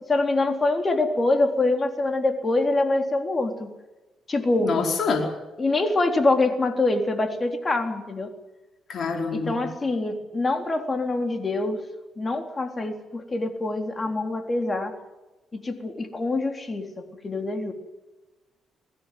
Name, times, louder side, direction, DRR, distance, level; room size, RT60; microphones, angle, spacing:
voice 1, 0.1-3.7 4.3-4.8 5.6-8.3 9.3-11.8 12.2-14.9 15.5-17.7, left 2 dB, 30° left, 5 dB, 3.8 m, -25 dB
voice 2, 4.6-5.3 8.9-9.6, left 4 dB, 55° left, 1 dB, 4.7 m, -26 dB
22.0 x 16.0 x 9.4 m, 1.1 s
cardioid pair, 90°, 0 cm